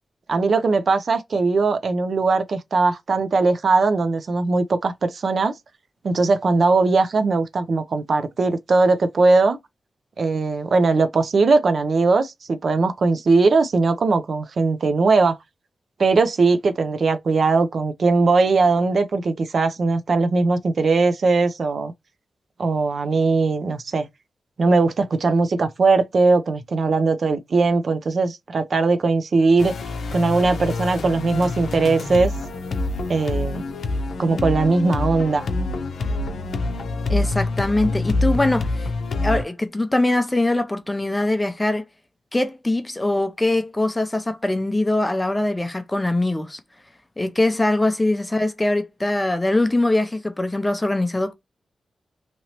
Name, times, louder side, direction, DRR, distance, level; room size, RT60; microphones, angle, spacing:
voice 1, 0.3-5.5 6.0-9.6 10.2-15.4 16.0-21.9 22.6-24.1 24.6-29.8 30.1-32.3 33.1-33.6 34.2-35.5, right 3 dB, 55° right, 0.4 m, -19 dB
sound 1, 29.6-39.4, left 2 dB, 75° left, 0.5 m, -26 dB
voice 2, 37.1-38.9 39.2-41.8 42.3-46.6 47.2-51.3, left 2 dB, 15° left, 0.5 m, -22 dB
2.9 x 2.8 x 2.8 m
wide cardioid pair, 120°, 0 cm